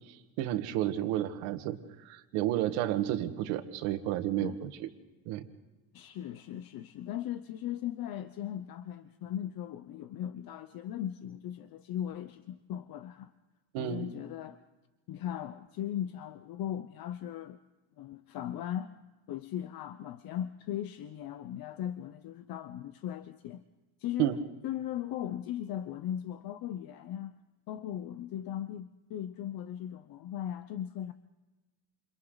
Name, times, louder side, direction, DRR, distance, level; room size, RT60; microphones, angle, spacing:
voice 1, 0.1-4.9 5.3-5.5 13.7-14.0 24.2-24.4, right 13 dB, 85° right, 2.1 m, -31 dB
voice 2, 5.9-13.3 13.8-14.6 15.1-17.6 18.0-18.9 19.3-23.6 24.0-24.3 24.6-27.3 27.7-31.1, left 11 dB, 45° left, 0.9 m, -38 dB
29.5 x 29.0 x 4.0 m
cardioid pair, 150°, 49 cm